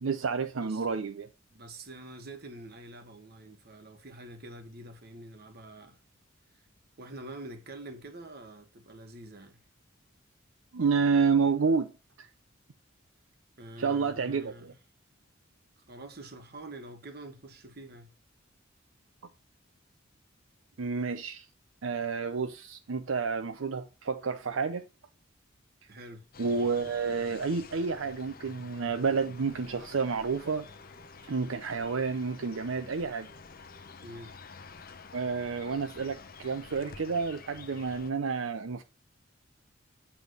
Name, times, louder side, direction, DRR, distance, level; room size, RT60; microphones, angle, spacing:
voice 1, 0.0-1.3 10.7-11.9 12.2-12.3 13.8-14.7 20.8-21.5 21.8-24.8 26.4-30.7 31.3-33.3 35.1-38.8, right 5 dB, 80° right, 0.6 m, -30 dB
voice 2, 1.5-6.0 7.0-9.6 13.6-14.7 15.9-18.1 25.9-26.2 34.0-34.4, right 1 dB, 50° right, 1.5 m, -46 dB
sound 1, 26.3-38.1, left 4 dB, 45° left, 0.7 m, -49 dB
8.2 x 3.5 x 6.5 m
head